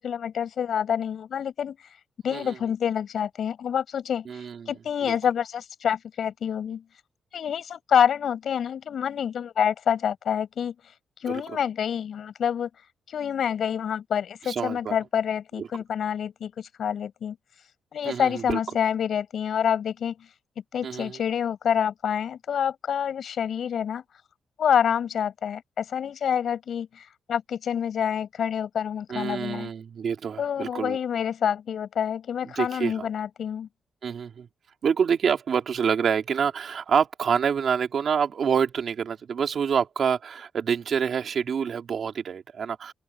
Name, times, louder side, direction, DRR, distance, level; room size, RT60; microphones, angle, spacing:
voice 1, 0.0-1.8 2.2-6.8 7.3-10.7 11.2-12.7 13.1-17.4 17.9-20.1 20.7-24.0 24.6-27.0 27.3-29.7 30.4-33.7, left 8 dB, 50° left, 5.5 m, -27 dB
voice 2, 4.3-5.1 11.3-11.6 14.5-15.0 15.6-15.7 18.0-18.6 20.8-21.2 29.1-31.0 32.4-33.1 34.0-34.5 34.8-42.9, right 7 dB, 45° right, 2.7 m, -27 dB
open air
wide cardioid pair, 180°, 0 cm